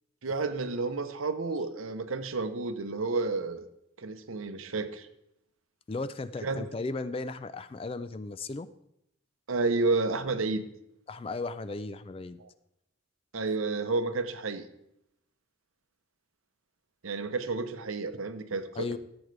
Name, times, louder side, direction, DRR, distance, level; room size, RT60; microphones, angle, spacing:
voice 1, 0.2-3.7 4.0-5.1 6.4-6.7 9.5-10.7 12.4-12.5 13.3-14.7 17.0-19.0, right 3 dB, 85° right, 10 dB, 0.8 m, -31 dB
voice 2, 5.9-8.7 11.1-12.4 18.8-19.0, left 3 dB, 25° left, 14 dB, 0.3 m, -36 dB
14.5 x 7.9 x 3.3 m, 0.81 s
head